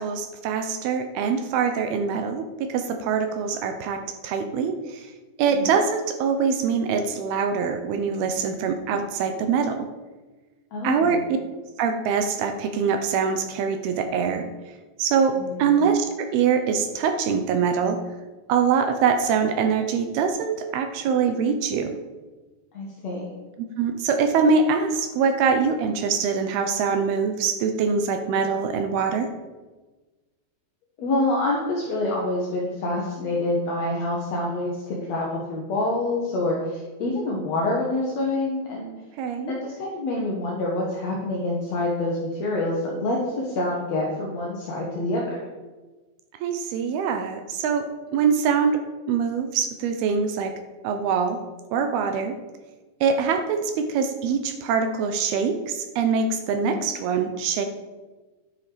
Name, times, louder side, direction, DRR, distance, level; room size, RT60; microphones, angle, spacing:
voice 1, 0.0-5.1 5.4-9.9 10.8-11.2 11.8-14.5 15.0-18.0 18.5-21.9 23.8-29.3 39.2-39.5 46.4-48.8 49.1-50.5 50.8-51.4 51.7-52.4 53.0-57.7, right 6 dB, 75° right, 7 dB, 2.6 m, -24 dB
voice 2, 10.7-11.2 15.4-15.7 22.7-23.3 31.0-38.9 39.6-45.5 56.6-56.9, left 2 dB, 55° left, -3 dB, 2.2 m, -27 dB
12.5 x 10.0 x 5.1 m, 1.3 s
omnidirectional pair, 4.9 m